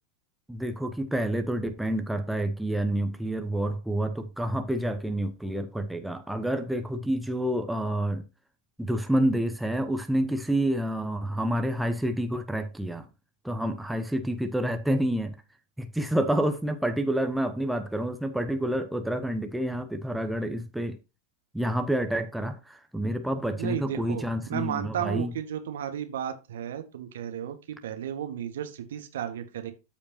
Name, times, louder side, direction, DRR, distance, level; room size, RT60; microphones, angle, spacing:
voice 1, 0.5-8.2 8.8-13.1 13.4-15.3 15.8-21.0 21.5-25.3, right 1 dB, 5° right, 0.9 m, -28 dB
voice 2, 23.6-29.7, right 10 dB, 60° right, 1.3 m, -34 dB
13.0 x 5.2 x 2.9 m
figure-of-eight pair, 90°, 0 cm